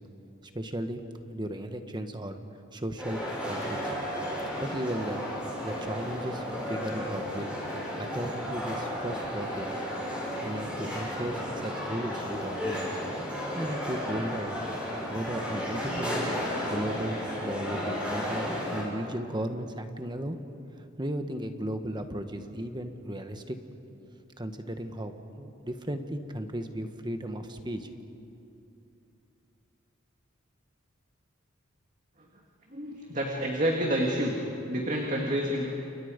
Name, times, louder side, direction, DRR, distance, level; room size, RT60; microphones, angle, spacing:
voice 1, 0.5-1.0 1.3-2.4 2.7-3.9 4.6-5.2 5.6-6.4 6.7-7.5 8.0-9.7 10.4-13.0 13.5-14.6 15.1-16.4 16.6-20.4 21.0-23.6 24.4-27.9, right 1 dB, 20° right, 7 dB, 1.4 m, -35 dB
sound 1, 3.0-18.8, equal, 5° right, 7.5 m, -33 dB
voice 2, 32.7-34.4 34.7-35.8, equal, 40° right, 0 dB, 2.3 m, -28 dB
30.0 x 28.5 x 5.3 m, 2.7 s
head